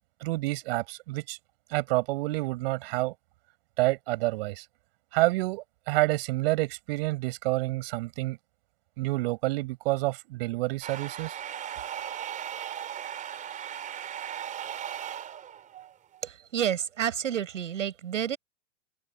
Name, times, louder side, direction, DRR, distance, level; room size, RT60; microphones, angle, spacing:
voice 1, 0.2-1.4 1.7-3.1 3.8-4.6 5.1-8.4 9.0-11.4, right 21 dB, 50° right, 7.5 m, -28 dB
sound 1, 10.8-16.3, right 9 dB, 20° right, 4.2 m, -37 dB
voice 2, 16.2-18.4, right 9 dB, 85° right, 7.4 m, -30 dB
open air
hypercardioid pair, 140°, 37 cm